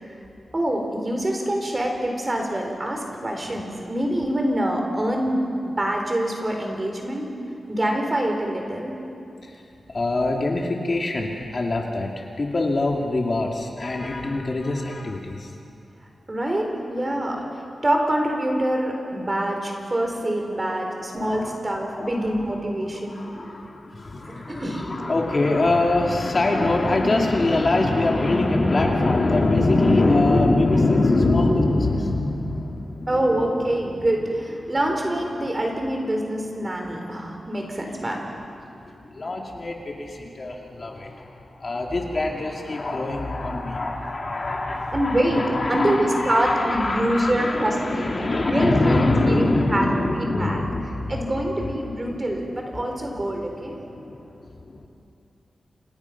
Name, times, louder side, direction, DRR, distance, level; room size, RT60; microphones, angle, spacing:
voice 1, 0.5-7.3 7.7-9.0 16.3-23.2 24.2-24.9 33.1-38.2 44.9-49.9 50.1-50.6 51.1-53.8, right 1 dB, 20° right, 2 dB, 4.0 m, -25 dB
voice 2, 9.9-15.5 20.6-22.4 22.8-33.5 33.8-33.9 39.0-51.4 51.8-52.1 53.8-54.9, left 2 dB, 35° left, 0 dB, 2.4 m, -24 dB
29.5 x 26.5 x 5.9 m, 2.7 s
wide cardioid pair, 165°, 0 cm